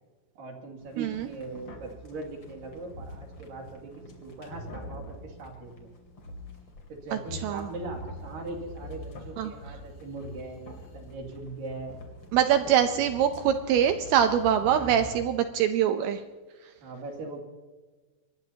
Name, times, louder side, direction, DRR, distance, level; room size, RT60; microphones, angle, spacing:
voice 1, 0.4-5.9 6.9-11.9 12.6-13.1 14.6-15.2 16.8-17.4, right 3 dB, 55° right, 1 dB, 3.8 m, -40 dB
sound 1, 0.8-15.1, left 1 dB, 35° left, 3.0 m, -45 dB
voice 2, 1.0-1.3 7.1-7.7 9.4-9.5 12.3-16.2, right 9 dB, 80° right, 8 dB, 2.4 m, -24 dB
25.5 x 20.0 x 2.9 m, 1.4 s
omnidirectional pair, 5.2 m